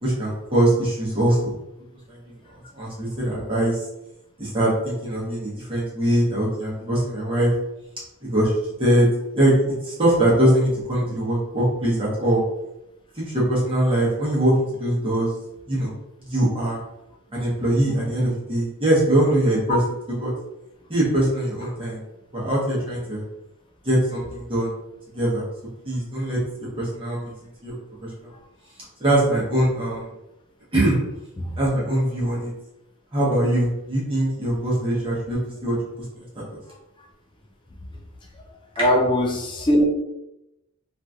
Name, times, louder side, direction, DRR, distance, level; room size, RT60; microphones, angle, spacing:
voice 1, 0.0-1.5 2.1-2.2 2.7-3.8 4.4-7.5 8.2-9.1 9.3-12.4 13.2-14.5 14.8-15.3 15.7-15.9 16.3-16.8 17.3-19.8 20.2-20.3 20.9-22.0 22.3-23.2 23.8-24.7 25.1-25.4 25.8-27.3 27.6-27.7 28.0-28.3 29.0-30.0 30.7-31.0 31.6-32.5 33.1-35.8 36.1-36.3 36.5-36.6 38.7-38.9, right 1 dB, 25° right, -7 dB, 1.0 m, -22 dB
voice 2, 38.8-39.8, equal, 20° left, 1 dB, 0.4 m, -20 dB
3.0 x 2.5 x 2.4 m, 0.88 s
head